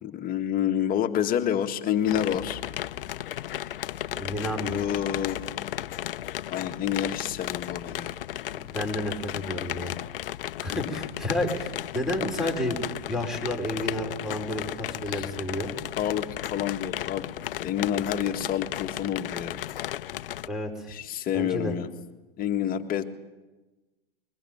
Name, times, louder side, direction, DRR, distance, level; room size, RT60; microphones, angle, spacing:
voice 1, 0.0-2.6 3.5-3.8 4.6-5.7 6.5-8.2 10.7-10.9 15.1-15.3 16.0-17.3 17.6-19.6 20.9-21.9 22.4-23.0, left 10 dB, 30° left, 6 dB, 1.9 m, -29 dB
sound 1, 2.1-20.5, left 12 dB, 65° left, 0.8 m, -34 dB
voice 2, 4.1-4.8 8.5-9.9 10.6-12.8 13.1-15.7 20.5-20.9 21.3-21.7, left 1 dB, ahead, 6 dB, 5.0 m, -31 dB
22.0 x 20.0 x 9.4 m, 1.1 s
hypercardioid pair, 105°, 29 cm